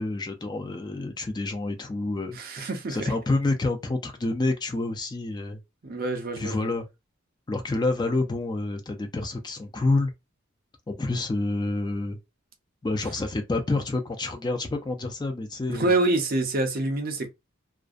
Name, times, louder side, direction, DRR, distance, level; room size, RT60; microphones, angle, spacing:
voice 1, 0.0-2.4 2.9-5.6 6.4-6.8 7.5-10.1 10.9-12.2 12.8-15.9, left 2 dB, 20° left, 0.4 m, -28 dB
voice 2, 2.3-3.1 5.8-6.7 15.7-17.3, right 2 dB, 45° right, 0.5 m, -26 dB
2.4 x 2.1 x 2.4 m
head